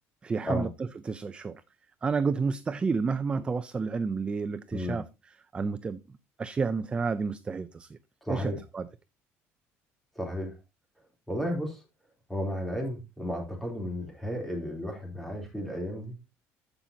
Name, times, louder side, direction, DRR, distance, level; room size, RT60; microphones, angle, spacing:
voice 1, 0.2-0.7 1.1-1.6 2.0-5.0 5.5-6.0 6.4-7.9 8.3-8.8, right 4 dB, 20° right, 0.4 m, -30 dB
voice 2, 8.2-8.6 10.1-10.5 11.3-11.8 12.3-16.2, equal, 5° left, 3.2 m, -33 dB
14.5 x 5.8 x 2.8 m
cardioid pair, 140°, 6 cm